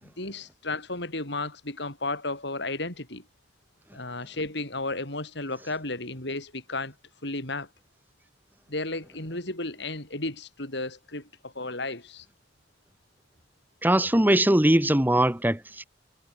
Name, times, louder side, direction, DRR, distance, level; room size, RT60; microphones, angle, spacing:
voice 1, 0.0-3.2 3.9-6.9 7.2-7.7 8.7-12.3, left 2 dB, 65° left, 7.6 m, -33 dB
voice 2, 13.8-15.8, right 1 dB, 10° right, 1.4 m, -21 dB
head